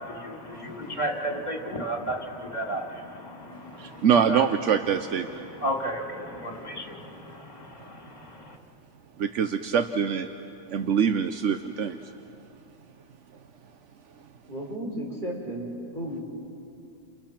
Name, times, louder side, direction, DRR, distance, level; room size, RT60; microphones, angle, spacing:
voice 1, 0.0-4.4 5.6-8.6, right 1 dB, 35° left, 1 dB, 3.0 m, -34 dB
voice 2, 3.8-5.4 9.2-10.3 10.7-12.0, right 7 dB, 85° right, 8 dB, 1.2 m, -24 dB
voice 3, 14.5-15.7 15.9-16.2, right 1 dB, 40° right, -3 dB, 5.0 m, -33 dB
30.0 x 29.0 x 6.0 m, 2.5 s
omnidirectional pair, 1.2 m